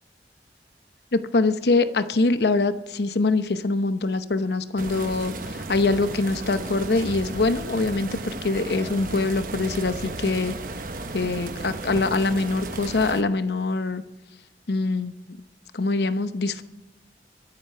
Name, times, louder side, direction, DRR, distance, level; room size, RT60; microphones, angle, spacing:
voice 1, 1.1-10.6 11.1-14.0 14.7-15.4 15.7-16.6, left 3 dB, 70° left, 11 dB, 0.8 m, -24 dB
sound 1, 4.8-13.2, right 2 dB, 50° right, 1.0 m, -34 dB
24.0 x 8.3 x 5.6 m, 1.0 s
head